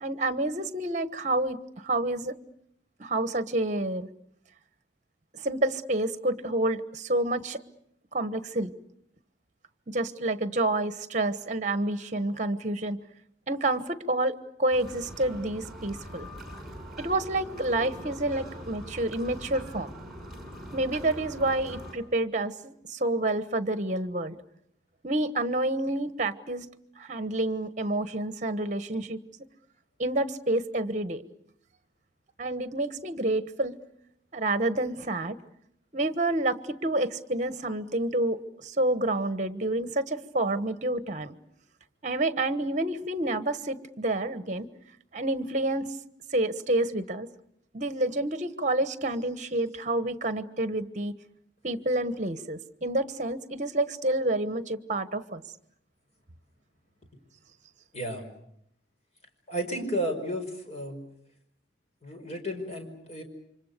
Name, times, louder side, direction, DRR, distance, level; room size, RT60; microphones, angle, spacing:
voice 1, 0.0-2.4 3.0-4.1 5.3-7.6 8.1-8.7 9.9-13.0 13.5-16.3 17.0-19.9 20.7-24.4 25.0-26.7 27.0-29.2 30.0-31.2 32.4-33.8 34.3-35.4 35.9-41.3 42.0-44.7 45.1-45.9 46.3-47.3 47.7-51.1 51.6-55.4, right 2 dB, 40° right, 12 dB, 1.2 m, -28 dB
sound 1, 14.7-22.0, equal, ahead, 6.1 m, -42 dB
voice 2, 57.9-58.3 59.5-61.0 62.0-63.2, equal, 35° left, 4 dB, 5.2 m, -33 dB
28.5 x 25.5 x 6.7 m, 0.74 s
head